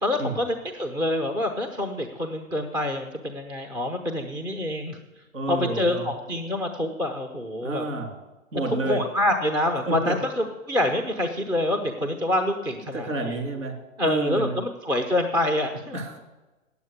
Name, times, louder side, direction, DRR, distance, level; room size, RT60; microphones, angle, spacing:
voice 1, 0.0-5.0 5.5-7.8 8.8-13.3 14.0-16.0, left 1 dB, 10° right, 5 dB, 0.9 m, -26 dB
voice 2, 5.3-6.1 7.6-8.1 8.5-9.1 9.9-10.2 12.9-13.8 14.0-14.6 15.9-16.2, right 2 dB, 75° right, 2 dB, 3.8 m, -29 dB
9.2 x 8.2 x 8.2 m, 1.1 s
hypercardioid pair, 125°, 40 cm